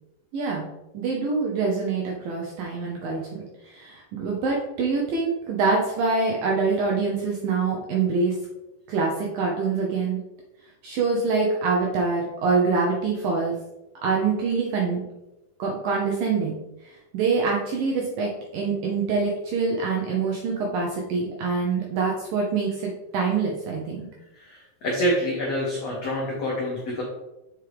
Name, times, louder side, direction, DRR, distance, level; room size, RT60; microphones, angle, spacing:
voice 1, 0.3-0.7 0.9-8.3 8.9-10.2 10.8-13.6 14.0-15.0 15.6-16.6 17.1-24.1, right 4 dB, 75° right, -2 dB, 2.1 m, -25 dB
voice 2, 24.3-27.0, equal, 85° left, -3 dB, 1.4 m, -27 dB
7.7 x 5.3 x 3.4 m, 0.95 s
omnidirectional pair, 5.0 m